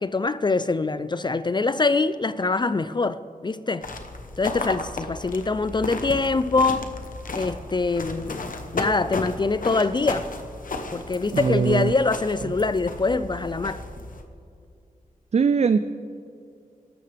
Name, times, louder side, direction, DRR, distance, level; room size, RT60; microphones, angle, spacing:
voice 1, 0.0-3.9 4.4-6.9 7.3-10.3 10.9-13.8, left 3 dB, 30° left, 14 dB, 0.3 m, -24 dB
sound 1, 3.8-14.2, left 2 dB, 65° left, 1.1 m, -34 dB
voice 2, 11.3-11.9 15.3-15.8, right 5 dB, 45° right, 11 dB, 0.4 m, -21 dB
21.5 x 12.0 x 3.4 m, 2.4 s
wide cardioid pair, 105°, 15 cm